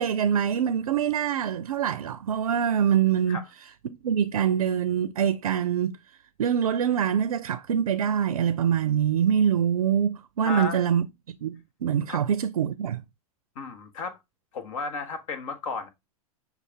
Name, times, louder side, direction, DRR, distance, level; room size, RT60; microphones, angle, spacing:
voice 1, 0.0-3.4 3.8-6.0 6.4-11.1 11.4-13.0, right 8 dB, 80° right, 0.4 m, -24 dB
voice 2, 10.4-10.9 12.1-12.2 13.5-14.2 14.5-15.9, left 4 dB, 65° left, 1.2 m, -34 dB
6.6 x 2.4 x 3.4 m
hypercardioid pair, 100°, 18 cm